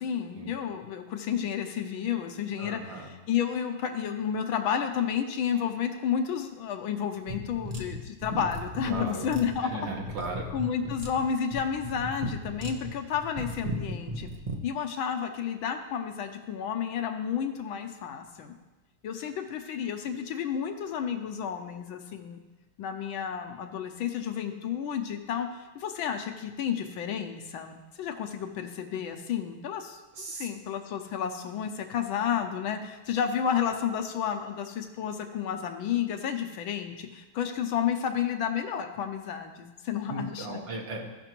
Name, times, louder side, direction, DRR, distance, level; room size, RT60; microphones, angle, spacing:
voice 1, 0.0-9.7 10.5-14.3 14.6-18.5 19.0-22.4 22.8-30.0 30.3-40.6, left 8 dB, 75° left, 4 dB, 1.5 m, -31 dB
voice 2, 2.6-3.1 8.9-9.3 9.6-10.5 30.2-30.5 40.1-41.1, right 2 dB, 65° right, 0 dB, 2.0 m, -36 dB
sound 1, 7.3-14.6, equal, 80° right, 0.3 m, -37 dB
16.0 x 6.0 x 3.0 m, 1.2 s
omnidirectional pair, 2.3 m